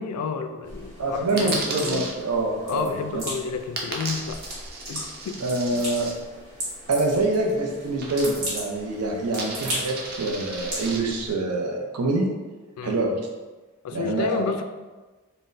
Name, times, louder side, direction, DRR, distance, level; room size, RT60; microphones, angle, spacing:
voice 1, 0.0-2.1 2.6-4.4 4.9-5.4 12.8-13.0 13.8-14.6, left 5 dB, 80° left, 8 dB, 0.3 m, -30 dB
sound 1, 0.6-11.3, right 1 dB, 65° right, 1.5 m, -37 dB
voice 2, 1.0-3.2 5.4-6.1 6.9-12.3 12.8-13.2 13.9-14.5, right 2 dB, 90° right, 1 dB, 0.6 m, -25 dB
Coin (dropping), 1.4-2.1 3.8-6.1 8.0-8.6 8.9-11.0, right 3 dB, 45° right, 0.5 m, -35 dB
3.9 x 2.1 x 2.5 m, 1.2 s
head